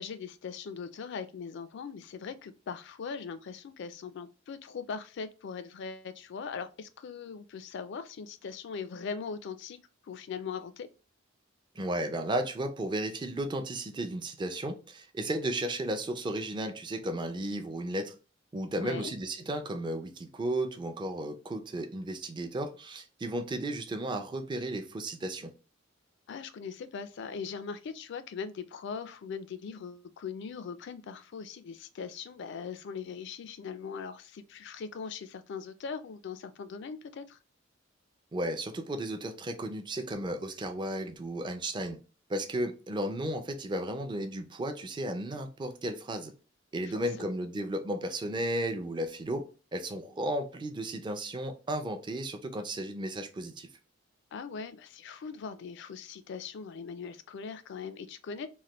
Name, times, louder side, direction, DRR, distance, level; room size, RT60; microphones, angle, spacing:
voice 1, 0.0-9.8 10.0-10.9 18.7-19.1 26.3-37.4 46.9-47.3 54.3-58.5, left 6 dB, 60° left, 0.3 m, -40 dB
voice 2, 11.8-18.1 18.5-25.5 38.3-42.0 42.3-46.3 46.7-49.5 49.7-53.7, right 1 dB, 25° right, 0.4 m, -34 dB
3.2 x 2.1 x 2.9 m
head